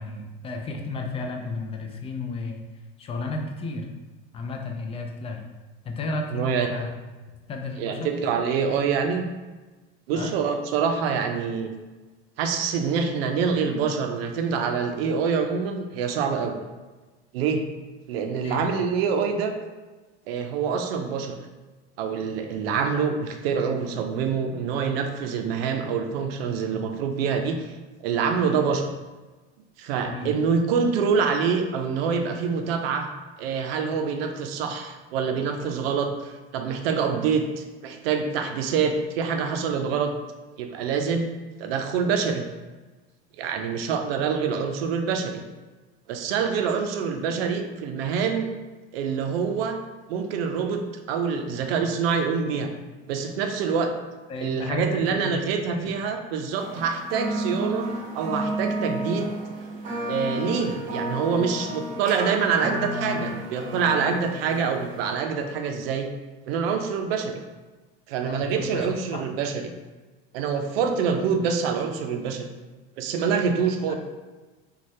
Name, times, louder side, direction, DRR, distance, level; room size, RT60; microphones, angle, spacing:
voice 1, 0.0-2.6 3.0-3.9 4.3-5.4 5.8-6.9 7.5-8.1 10.1-10.4 18.4-18.6 30.0-30.4 54.3-55.9 68.2-69.2 73.9-74.0, left 3 dB, 20° left, 2 dB, 0.3 m, -32 dB
voice 2, 6.3-6.7 7.8-9.3 10.1-11.7 12.4-16.6 17.3-17.6 18.1-19.5 20.3-21.4 22.0-27.7 28.0-28.9 29.8-33.1 33.4-40.1 40.6-41.3 41.6-42.4 43.4-45.4 46.1-48.5 48.9-49.8 50.1-52.7 53.1-53.9 54.4-59.3 60.1-66.1 66.5-67.4 68.1-69.7 70.3-72.5 73.0-74.0, right 6 dB, 80° right, 6 dB, 0.5 m, -26 dB
sound 1, 56.6-65.1, equal, 25° right, 1.2 m, -32 dB
2.6 x 2.3 x 3.1 m, 1.2 s
supercardioid pair, 105°, 30 cm